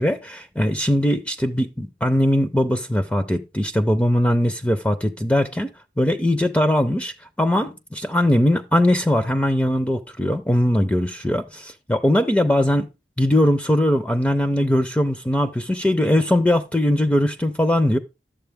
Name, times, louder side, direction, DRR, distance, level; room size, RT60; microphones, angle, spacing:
voice 1, 0.0-5.7 6.0-12.9 13.2-18.0, left 1 dB, 5° left, 0.5 m, -20 dB
11.5 x 7.4 x 3.4 m
head